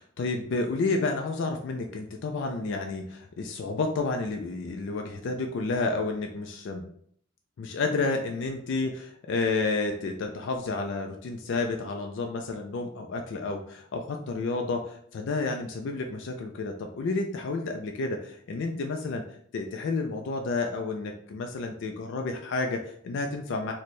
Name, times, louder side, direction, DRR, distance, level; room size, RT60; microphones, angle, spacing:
voice 1, 0.0-6.8 7.6-19.2 19.5-23.7, left 3 dB, 55° left, 3 dB, 0.3 m, -30 dB
4.2 x 2.1 x 3.1 m, 0.65 s
head